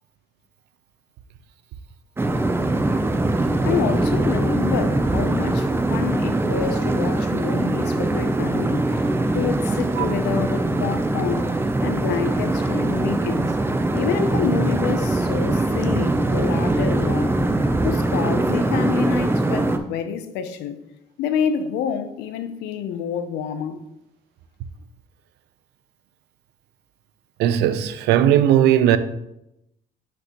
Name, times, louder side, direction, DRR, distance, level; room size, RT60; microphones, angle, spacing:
sound 1, 2.2-19.8, right 2 dB, 15° right, 0.5 m, -22 dB
voice 1, 3.6-13.6 13.9-17.4 17.8-20.8 21.2-23.8, left 7 dB, 85° left, 0.6 m, -28 dB
voice 2, 27.4-29.0, right 11 dB, 85° right, 0.5 m, -17 dB
6.3 x 5.3 x 3.0 m
cardioid pair, 110°, 17 cm